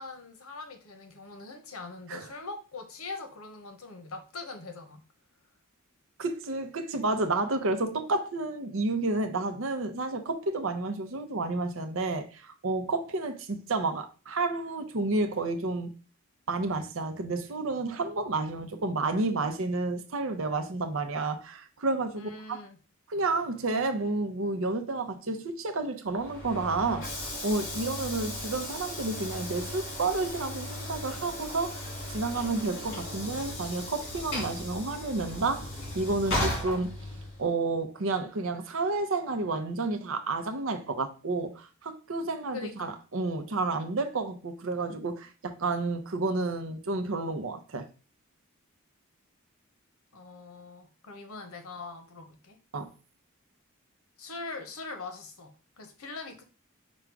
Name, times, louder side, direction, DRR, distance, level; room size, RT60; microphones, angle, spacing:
voice 1, 0.0-5.0 22.1-22.8 42.5-42.9 50.1-52.6 54.2-56.4, left 3 dB, 80° left, 0.9 m, -42 dB
voice 2, 6.2-15.9 16.5-22.6 23.1-35.7 35.9-37.0 37.4-47.9 52.7-52.9, right 3 dB, 65° right, 0.7 m, -30 dB
Train / Sliding door, 26.1-37.5, left 1 dB, 55° left, 2.1 m, -36 dB
5.1 x 2.3 x 4.6 m
head